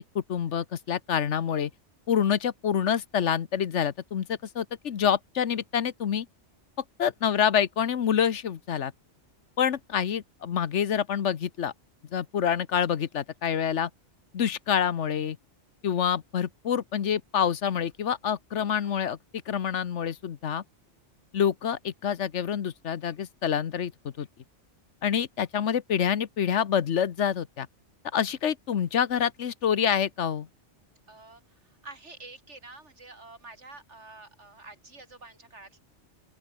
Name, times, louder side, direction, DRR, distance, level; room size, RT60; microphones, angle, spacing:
voice 1, 0.0-1.7 2.1-6.3 7.0-8.9 9.6-11.7 12.1-13.9 14.3-15.4 15.8-19.2 19.5-20.6 21.3-23.9 24.2-24.3 25.0-27.7 28.1-30.5, left 8 dB, 75° left, 1.3 m, -27 dB
voice 2, 31.1-35.8, right 3 dB, 75° right, 4.0 m, -48 dB
open air
omnidirectional pair, 1.2 m